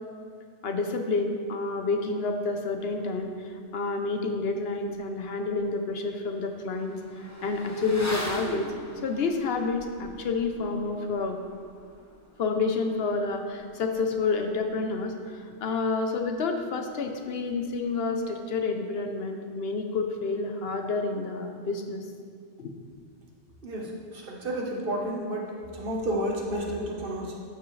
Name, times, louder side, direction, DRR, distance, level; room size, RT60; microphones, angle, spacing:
voice 1, 0.6-7.0 7.4-8.7 9.0-11.4 12.4-22.1 22.6-22.7, left 3 dB, 60° left, 5 dB, 0.9 m, -29 dB
Motorcycle / Accelerating revving vroom, 4.9-5.0 5.4-15.4 15.7-15.8, equal, 15° left, 0.9 m, -41 dB
voice 2, 23.6-27.4, right 1 dB, 50° right, -1 dB, 1.3 m, -31 dB
12.5 x 6.1 x 3.2 m, 2.2 s
omnidirectional pair, 1.2 m